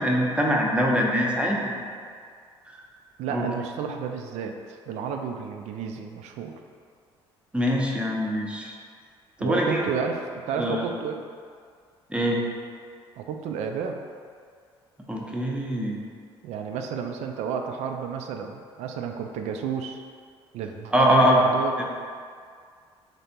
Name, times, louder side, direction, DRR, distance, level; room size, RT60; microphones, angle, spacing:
voice 1, 0.0-1.8 2.7-2.8 3.3-3.4 7.5-8.7 9.4-9.8 10.6-10.8 12.1-12.4 15.1-16.0 20.9-21.4 21.8-21.9, equal, 10° right, -2 dB, 0.7 m, -23 dB
voice 2, 3.2-6.5 9.4-10.2 10.5-11.2 13.2-14.0 16.4-20.0 20.5-21.9, right 6 dB, 55° right, 4 dB, 0.4 m, -31 dB
3.9 x 3.3 x 2.8 m, 2.1 s
figure-of-eight pair, 50°, 14 cm